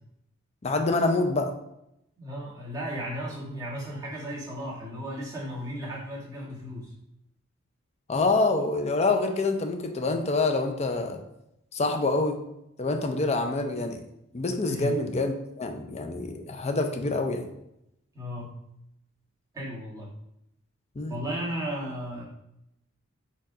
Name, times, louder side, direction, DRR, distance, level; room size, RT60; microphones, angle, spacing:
voice 1, 0.6-1.5 8.1-11.2 11.7-12.4 12.8-14.0 14.3-17.5 21.0-21.2, left 3 dB, 30° left, 5 dB, 0.5 m, -26 dB
voice 2, 2.2-6.9 14.6-15.0 18.1-18.6 19.5-20.1 21.1-22.2, equal, 15° right, -7 dB, 1.5 m, -35 dB
4.6 x 2.4 x 4.8 m, 0.82 s
head